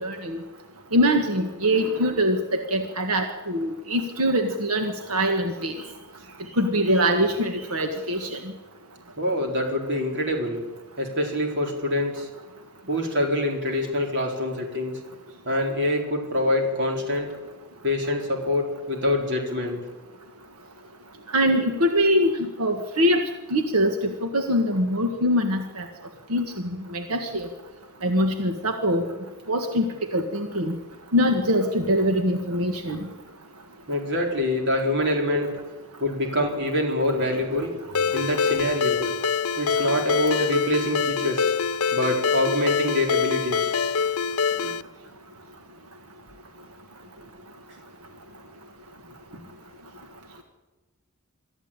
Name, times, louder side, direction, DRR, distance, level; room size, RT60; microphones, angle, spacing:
voice 1, 0.0-0.4 0.9-5.8 6.6-8.4 21.3-23.2 23.5-25.8 26.3-27.5 28.0-29.0 29.5-30.8 31.1-33.0, equal, 90° right, 5 dB, 1.6 m, -23 dB
voice 2, 1.7-2.2 9.2-10.7 11.0-12.3 12.9-15.0 15.4-17.3 17.8-19.8 33.9-35.6 36.0-37.7 38.1-39.1 39.6-41.5 41.9-43.8 44.5-44.7 49.3-49.4, left 1 dB, 55° right, 2 dB, 4.4 m, -25 dB
Ringtone, 37.9-44.8, left 6 dB, 75° left, 0.7 m, -25 dB
24.0 x 13.5 x 8.9 m, 1.2 s
head